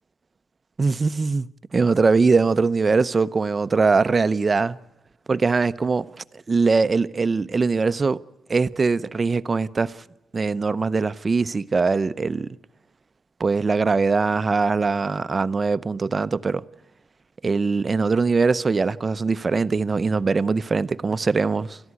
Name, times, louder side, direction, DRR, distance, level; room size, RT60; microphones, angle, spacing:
voice 1, 0.8-4.8 5.3-6.1 6.3-8.2 8.5-10.0 10.3-12.6 13.4-16.6 17.4-21.8, right 4 dB, 30° right, 0.7 m, -21 dB
29.5 x 14.0 x 9.6 m
cardioid pair, 100°, 0 cm